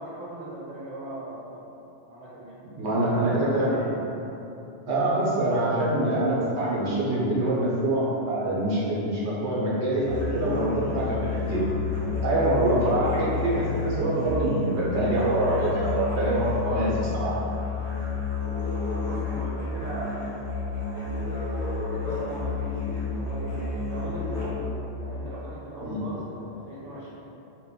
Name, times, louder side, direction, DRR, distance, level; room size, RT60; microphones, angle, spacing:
voice 1, 0.0-1.8 2.1-2.6 3.0-3.4 3.8-4.0 19.0-20.4 20.9-27.2, right 1 dB, 35° right, -7 dB, 0.9 m, -39 dB
voice 2, 2.8-3.7 4.9-11.6 12.2-17.3 25.8-26.0, right 1 dB, 80° right, -7 dB, 1.1 m, -25 dB
Musical instrument, 10.0-24.8, left 4 dB, 50° left, 1.0 m, -30 dB
4.3 x 2.5 x 3.9 m, 2.9 s
omnidirectional pair, 1.1 m